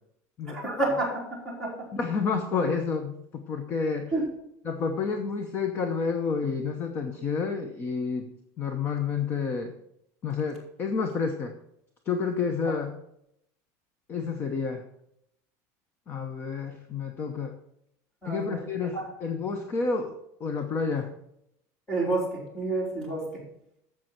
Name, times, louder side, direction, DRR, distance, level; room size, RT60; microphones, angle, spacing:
voice 1, 0.5-1.7 4.1-4.3 18.2-18.7 18.9-19.1 21.9-23.3, right 2 dB, 5° left, -4 dB, 3.7 m, -29 dB
voice 2, 1.9-4.1 4.6-8.3 8.6-9.7 10.2-11.6 12.1-12.9 14.1-14.9 16.1-17.6 18.2-21.1, left 5 dB, 30° left, 6 dB, 0.8 m, -29 dB
11.5 x 7.7 x 4.5 m, 0.76 s
cardioid pair, 170°, 8 cm